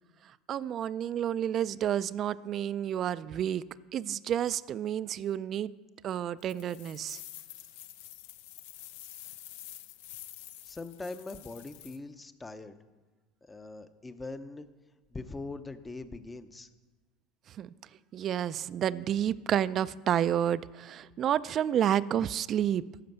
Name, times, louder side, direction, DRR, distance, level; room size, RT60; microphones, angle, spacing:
voice 1, 0.5-3.6 3.9-5.7 6.0-7.2 17.5-17.7 18.1-22.8, right 10 dB, 40° right, 17 dB, 0.3 m, -30 dB
sound 1, 6.4-12.0, left 13 dB, 75° left, 0.5 m, -48 dB
voice 2, 10.7-12.8 13.4-14.7 15.1-16.7, left 3 dB, 15° left, 11 dB, 0.6 m, -42 dB
12.5 x 5.1 x 7.9 m, 1.3 s
supercardioid pair, 115°, 0 cm